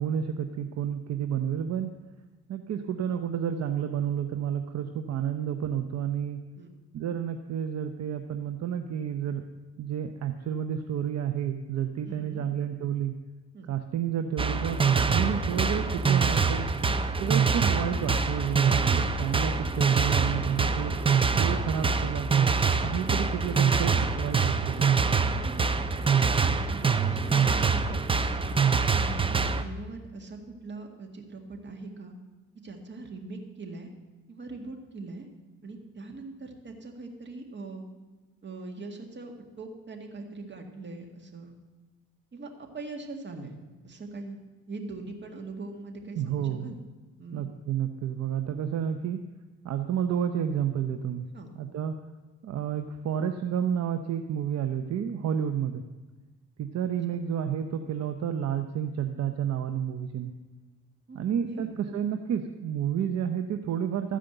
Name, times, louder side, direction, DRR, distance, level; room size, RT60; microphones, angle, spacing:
voice 1, 0.0-2.0 2.5-6.4 6.9-9.4 9.8-13.1 13.7-16.7 17.2-21.0 21.4-22.5 22.8-24.9 46.2-46.7 47.3-49.2 49.6-51.3 51.6-51.9 52.4-55.8 56.6-60.3 61.1-64.2, right 9 dB, 60° right, 7 dB, 0.7 m, -30 dB
voice 2, 12.1-12.5 13.5-13.7 18.8-19.3 25.3-25.9 26.4-28.5 28.9-32.1 32.6-33.9 34.3-35.3 35.6-37.8 38.4-41.5 42.3-43.6 43.8-44.4 44.7-46.8 47.2-47.5 51.3-51.5 57.1-57.2 61.1-61.2 61.5-61.8, right 3 dB, 35° right, 3 dB, 1.8 m, -42 dB
sound 1, 14.4-29.6, right 5 dB, 20° right, 0.5 m, -25 dB
13.5 x 5.0 x 7.8 m, 1.2 s
cardioid pair, 90°, 30 cm